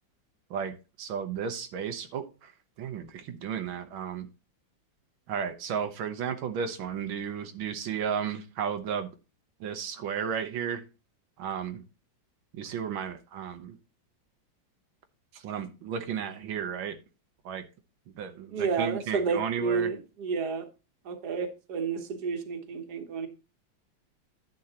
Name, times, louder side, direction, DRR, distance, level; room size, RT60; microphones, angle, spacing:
voice 1, 0.5-2.5 2.8-4.3 5.3-9.1 9.6-10.8 11.4-11.8 12.5-13.8 15.3-17.0 17.5-17.6 18.2-19.9, right 7 dB, 90° right, 1.7 m, -33 dB
voice 2, 18.5-20.6 21.1-23.3, right 5 dB, 60° right, 1.7 m, -30 dB
10.5 x 7.6 x 2.9 m
omnidirectional pair, 2.1 m